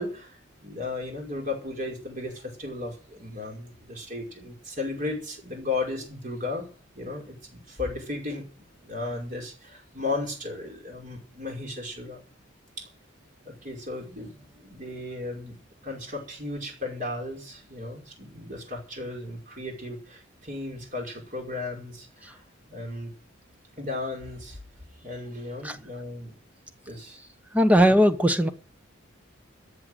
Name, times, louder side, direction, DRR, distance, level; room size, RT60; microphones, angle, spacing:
voice 1, 0.0-6.7 7.0-12.2 12.8-12.9 13.5-15.6 15.8-22.4 22.7-23.1 23.8-24.6 25.0-26.3 26.9-27.2, left 2 dB, 40° right, 5.4 m, -35 dB
voice 2, 27.5-28.5, equal, 5° right, 1.0 m, -19 dB
13.5 x 7.6 x 9.3 m
head